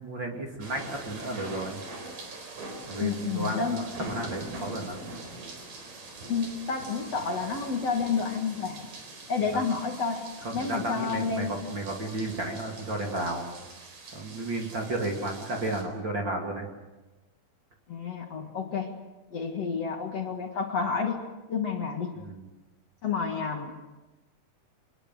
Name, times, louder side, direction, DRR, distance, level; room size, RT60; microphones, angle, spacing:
voice 1, 0.0-1.8 2.9-5.0 9.5-9.6 10.4-13.6 14.1-16.7 22.2-22.5, right 2 dB, 35° right, 1 dB, 3.0 m, -33 dB
sound 1, 0.6-15.8, right 2 dB, 75° right, 6.0 m, -43 dB
voice 2, 3.0-4.1 6.3-8.9 9.3-10.2 10.5-11.6 17.9-18.9 19.3-21.2 21.5-22.2 23.0-23.7, left 5 dB, 50° left, 3 dB, 2.7 m, -30 dB
25.5 x 20.5 x 7.8 m, 1.1 s
omnidirectional pair, 4.1 m